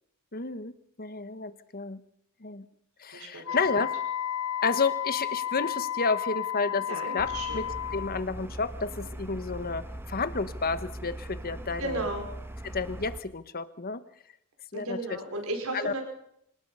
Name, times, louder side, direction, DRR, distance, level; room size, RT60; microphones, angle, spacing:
voice 1, 0.3-0.7 1.0-2.0 2.4-2.6 3.0-3.9 4.6-6.9 7.1-7.6 7.9-9.8 10.1-12.0 12.6-14.0 14.7-15.0 15.7-15.9, left 4 dB, 45° left, 13 dB, 1.2 m, -31 dB
voice 2, 3.1-3.5 6.9-7.6 11.8-12.3 14.7-16.0, right 2 dB, 75° right, 4 dB, 5.0 m, -34 dB
Wind instrument woodwind instrument, 3.4-8.2, left 10 dB, 65° left, 0.7 m, -32 dB
sound 1, 7.2-13.2, right 1 dB, 10° right, 1.2 m, -40 dB
25.5 x 18.5 x 5.6 m, 0.75 s
head